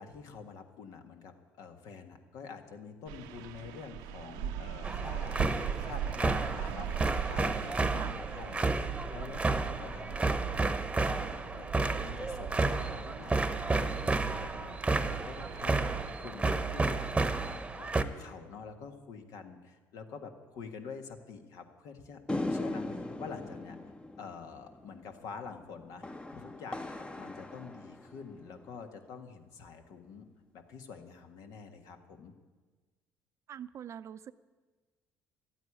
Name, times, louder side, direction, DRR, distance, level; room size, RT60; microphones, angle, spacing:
voice 1, 0.0-5.5 5.8-23.8 24.2-26.0 26.3-30.3 30.5-32.3, left 5 dB, 70° left, 6 dB, 1.6 m, -47 dB
sound 1, 3.1-16.1, right 9 dB, 85° right, 0.7 m, -41 dB
sound 2, 4.8-18.0, right 3 dB, 15° right, 1.0 m, -31 dB
sound 3, 22.3-28.8, left 2 dB, 15° left, 0.9 m, -39 dB
voice 2, 33.5-34.3, right 9 dB, 50° right, 14 dB, 0.6 m, -43 dB
12.0 x 9.1 x 10.0 m, 1.4 s
supercardioid pair, 75°, 6 cm